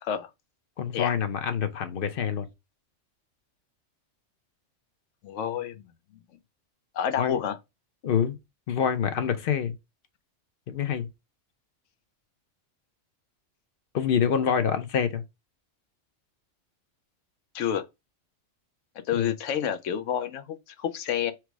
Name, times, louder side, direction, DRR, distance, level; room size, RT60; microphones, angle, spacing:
voice 1, 0.8-2.5 7.2-7.4 8.0-8.4 8.7-9.7 10.7-11.1 13.9-15.2 19.1-19.3, left 7 dB, 55° left, 0.7 m, -26 dB
voice 2, 5.2-5.9 6.9-7.6 17.5-17.8 19.1-21.3, left 9 dB, 85° left, 1.0 m, -29 dB
4.6 x 2.0 x 4.6 m
omnidirectional pair, 1.3 m